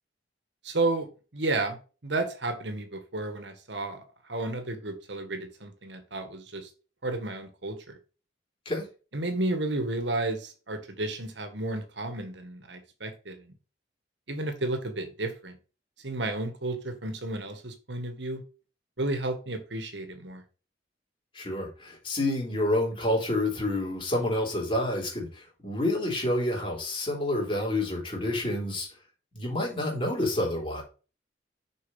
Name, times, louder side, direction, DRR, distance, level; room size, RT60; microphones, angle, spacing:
voice 1, 0.6-1.1 1.3-6.7 7.0-8.0 9.1-13.5 14.3-15.5 16.0-18.4 19.0-20.4, right 2 dB, 75° right, 7 dB, 1.7 m, -32 dB
voice 2, 21.3-28.9 29.3-30.8, left 1 dB, 30° left, -1 dB, 3.9 m, -28 dB
6.8 x 5.4 x 5.5 m, 0.35 s
head